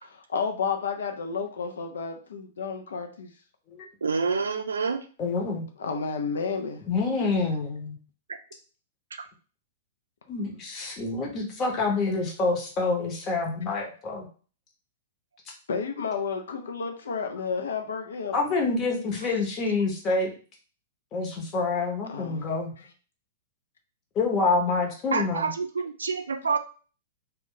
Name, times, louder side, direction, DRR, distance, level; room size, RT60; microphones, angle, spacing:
voice 1, 0.0-3.3 5.8-6.8 15.7-18.4 22.1-22.5, left 5 dB, 65° left, 4 dB, 0.4 m, -31 dB
voice 2, 4.0-5.0 25.1-26.6, right 5 dB, 70° right, 6 dB, 0.4 m, -27 dB
voice 3, 5.2-5.7 6.9-8.0 10.3-14.3 18.3-20.3 21.1-22.7 24.1-25.5, left 3 dB, 30° left, 0 dB, 0.9 m, -27 dB
2.4 x 2.2 x 3.7 m, 0.39 s
figure-of-eight pair, 105°, 0 cm